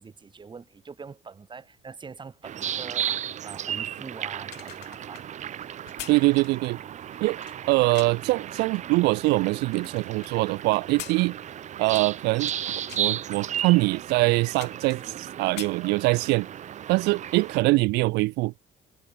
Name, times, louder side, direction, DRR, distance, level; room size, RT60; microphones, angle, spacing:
voice 1, 0.0-5.3, right 5 dB, 30° right, 3.0 m, -43 dB
sound 1, 2.4-17.6, right 10 dB, 45° right, 0.6 m, -35 dB
sound 2, 4.3-8.3 8.9-10.3 10.7-12.6 12.9-13.2 13.8-13.9 14.2-15.2 15.4-16.4 16.8-17.0, left 18 dB, 85° left, 3.8 m, -44 dB
voice 2, 6.1-6.8 7.2-7.4 7.7-11.4 11.8-16.5 16.9-18.5, right 23 dB, 90° right, 0.4 m, -23 dB
cardioid pair, 110°, 17 cm